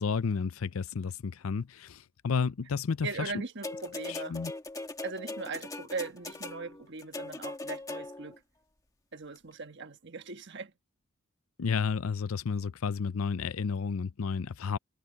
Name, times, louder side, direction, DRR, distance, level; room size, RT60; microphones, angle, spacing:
voice 1, 0.0-3.3 4.1-4.5 11.6-14.8, left 5 dB, 80° left, 0.5 m, -31 dB
voice 2, 3.0-4.4 5.0-8.4 9.1-10.7, right 4 dB, 55° right, 1.4 m, -39 dB
sound 1, 3.6-8.4 9.4-9.5, left 2 dB, 15° left, 1.6 m, -40 dB
head